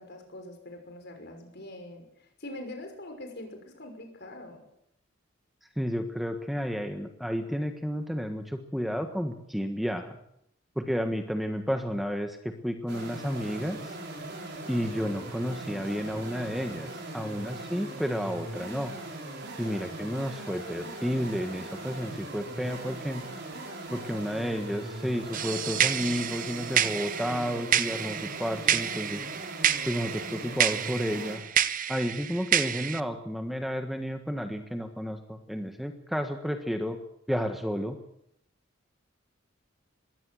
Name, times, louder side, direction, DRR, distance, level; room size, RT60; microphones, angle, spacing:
voice 1, 0.0-4.6, left 1 dB, 55° left, 5 dB, 5.9 m, -43 dB
voice 2, 5.8-10.2 10.8-13.9 14.7-16.9 17.1-18.9 19.6-23.2 23.9-29.3 29.9-31.4 31.9-37.0 37.3-38.0, equal, ahead, 5 dB, 1.4 m, -31 dB
sound 1, 12.9-31.4, right 2 dB, 60° right, 6.5 m, -40 dB
sound 2, 25.3-33.0, right 9 dB, 45° right, 0.8 m, -29 dB
21.5 x 17.0 x 7.9 m, 0.76 s
head